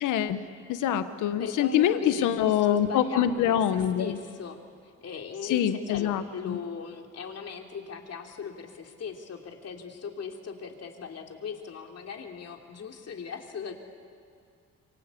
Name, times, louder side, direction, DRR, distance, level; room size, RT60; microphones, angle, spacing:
voice 1, 0.0-0.4 0.7-4.2 5.4-6.6, left 10 dB, 85° left, 11 dB, 1.1 m, -25 dB
voice 2, 1.4-4.6 5.0-13.7, left 6 dB, 55° left, 3 dB, 3.2 m, -38 dB
26.5 x 24.5 x 8.4 m, 2.3 s
cardioid pair, 90°, 30 cm